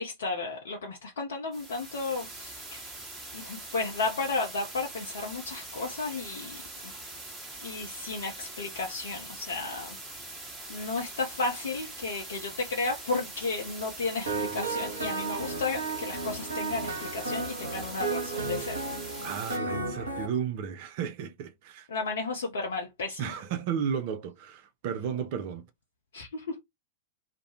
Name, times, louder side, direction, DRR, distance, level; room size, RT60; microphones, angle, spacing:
voice 1, 0.0-2.9 3.3-7.0 7.6-10.0 10.7-18.8 19.1-19.2 21.9-23.4 26.1-26.6, left 3 dB, 60° left, 0.5 m, -33 dB
sound 1, 1.5-19.6, right 2 dB, 15° right, 1.1 m, -43 dB
sound 2, 14.3-20.3, right 3 dB, 75° right, 0.9 m, -33 dB
voice 2, 19.2-21.9 23.2-25.6, right 7 dB, 45° right, 0.5 m, -33 dB
2.4 x 2.1 x 2.7 m
figure-of-eight pair, 95°, 0 cm